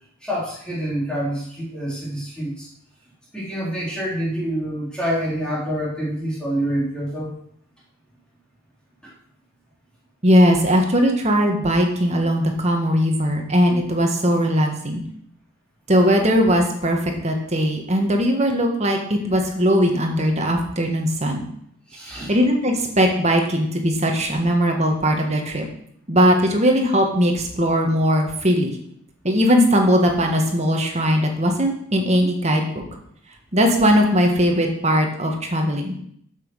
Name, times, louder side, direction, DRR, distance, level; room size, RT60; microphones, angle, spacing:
voice 1, 0.2-2.7 3.3-7.3 9.0-9.1 21.9-22.3 32.2-32.3, equal, 5° left, -7 dB, 3.6 m, -27 dB
voice 2, 10.2-15.0 15.9-21.5 22.3-25.7 26.1-28.8 29.2-32.8 33.5-35.9, equal, 30° right, 2 dB, 1.7 m, -19 dB
9.2 x 7.6 x 6.4 m, 0.66 s
head